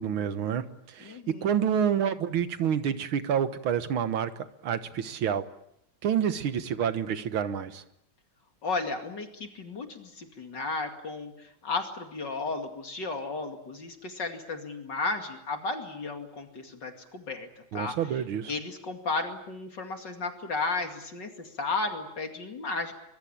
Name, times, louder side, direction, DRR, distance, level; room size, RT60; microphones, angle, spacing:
voice 1, 0.0-4.3 4.6-5.5 6.0-7.8 17.7-18.5, right 8 dB, 80° right, 12 dB, 2.1 m, -28 dB
voice 2, 1.0-1.6 8.6-18.2 18.5-22.9, left 3 dB, 55° left, 5 dB, 3.0 m, -34 dB
25.0 x 22.5 x 8.7 m, 0.77 s
omnidirectional pair, 2.3 m